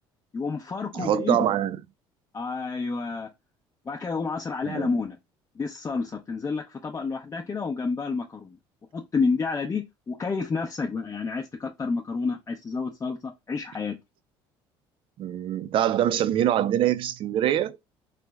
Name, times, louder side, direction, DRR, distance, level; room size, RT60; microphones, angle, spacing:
voice 1, 0.3-1.5 2.3-3.3 3.9-5.2 5.6-8.6 8.9-14.0, left 4 dB, 25° left, 0.6 m, -29 dB
voice 2, 0.9-1.8 4.7-4.9 15.2-17.8, right 11 dB, 55° right, 0.4 m, -24 dB
3.3 x 2.0 x 3.3 m
supercardioid pair, 90°, 11 cm